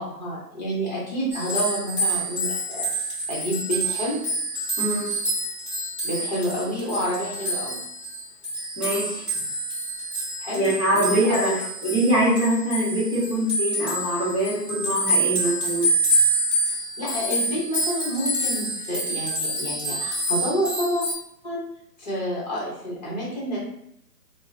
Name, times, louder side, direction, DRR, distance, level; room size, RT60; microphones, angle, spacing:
voice 1, 0.0-2.9 3.3-4.2 6.0-7.8 10.4-10.7 11.1-11.6 17.0-21.0 21.4-21.6 22.0-23.6, equal, 25° left, -6 dB, 0.8 m, -28 dB
sound 1, 1.3-21.1, right 1 dB, 10° left, 1.3 m, -27 dB
voice 2, 4.8-5.1 8.8-9.2 10.5-15.9, right 1 dB, 20° right, -11 dB, 0.7 m, -23 dB
3.5 x 2.1 x 2.6 m, 0.76 s
hypercardioid pair, 160°, 48 cm